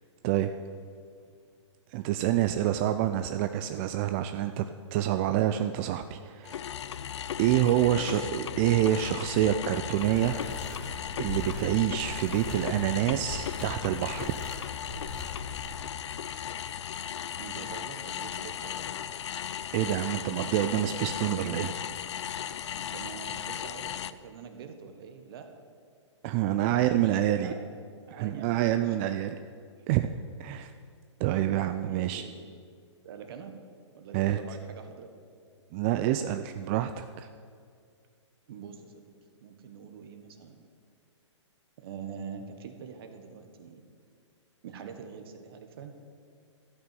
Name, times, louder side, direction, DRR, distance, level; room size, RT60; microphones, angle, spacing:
voice 1, 1.9-4.7 4.9-6.6 7.4-10.4 11.2-14.4 19.7-21.7 26.2-27.5 28.1-29.4 29.9-30.1 30.4-30.7 31.2-32.2 34.1-34.4 35.7-37.3, right 12 dB, 25° right, 8 dB, 0.3 m, -27 dB
sound 1, 6.4-24.1, left 9 dB, 65° left, 0.5 m, -36 dB
voice 2, 7.8-8.3 17.4-18.8 21.1-21.6 22.9-25.5 26.6-27.8 28.1-29.0 31.9-32.3 33.0-33.5 33.9-35.1 38.5-39.1 39.4-40.6 41.8-43.8 44.6-45.9, right 6 dB, 50° right, 6 dB, 1.5 m, -44 dB
sound 2, 10.0-15.8, left 1 dB, 5° left, 2.3 m, -41 dB
13.0 x 5.9 x 9.3 m, 2.2 s
hypercardioid pair, 140°, 16 cm